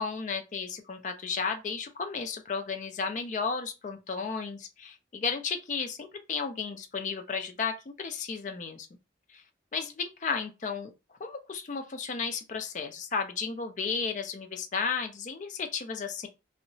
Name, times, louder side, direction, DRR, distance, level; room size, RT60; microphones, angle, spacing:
voice 1, 0.0-8.9 9.3-9.4 9.7-10.9 11.2-16.3, left 5 dB, 40° left, 0.4 m, -33 dB
2.8 x 2.1 x 2.6 m
head